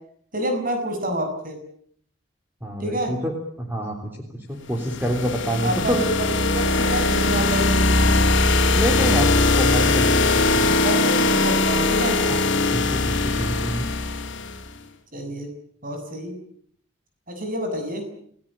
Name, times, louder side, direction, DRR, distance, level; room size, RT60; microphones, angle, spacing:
voice 1, 0.3-1.6 2.8-3.1 5.6-8.1 10.8-12.2 15.1-15.5 15.8-16.3 17.3-18.1, right 1 dB, 40° right, 6 dB, 7.2 m, -28 dB
voice 2, 2.6-3.3 3.6-3.9 4.3-6.0 8.7-9.3 9.5-10.8 12.7-13.9, equal, 10° right, 1 dB, 3.5 m, -27 dB
sound 1, 4.8-14.6, left 2 dB, 60° left, 3.6 m, -20 dB
30.0 x 17.5 x 8.9 m, 0.65 s
head